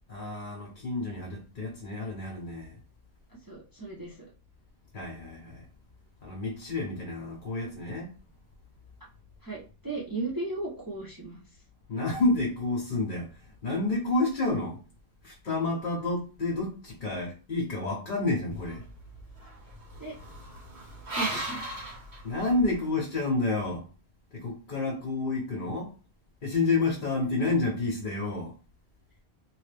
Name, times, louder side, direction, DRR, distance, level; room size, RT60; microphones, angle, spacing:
voice 1, 0.1-2.8 4.9-5.6 6.2-8.1 11.9-13.3 13.6-14.8 15.2-18.8 22.2-23.8 24.3-25.9 26.4-28.5, left 2 dB, 55° left, 1.0 m, -29 dB
voice 2, 3.5-4.2 9.4-11.4 20.0-20.2 21.1-21.7, right 2 dB, 20° right, 0.8 m, -36 dB
sound 1, 18.5-22.9, right 1 dB, 85° right, 1.6 m, -38 dB
3.0 x 2.6 x 3.3 m
omnidirectional pair, 1.1 m